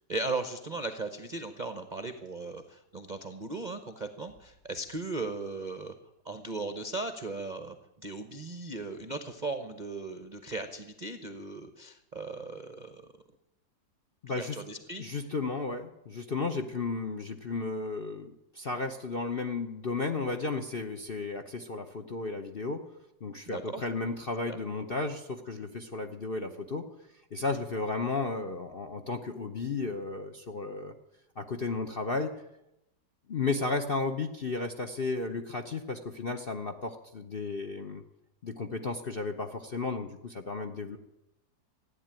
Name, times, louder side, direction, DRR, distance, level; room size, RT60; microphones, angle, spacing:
voice 1, 0.1-5.9 6.2-7.8 8.0-13.0 14.3-15.2 23.5-23.8 24.5-24.6, right 3 dB, 35° right, 8 dB, 0.7 m, -37 dB
voice 2, 14.2-14.6 15.0-22.9 23.2-26.9 27.3-30.9 31.4-32.3 33.3-38.0 38.4-41.0, left 3 dB, 45° left, 6 dB, 0.8 m, -34 dB
15.0 x 10.0 x 8.9 m, 0.88 s
omnidirectional pair, 2.0 m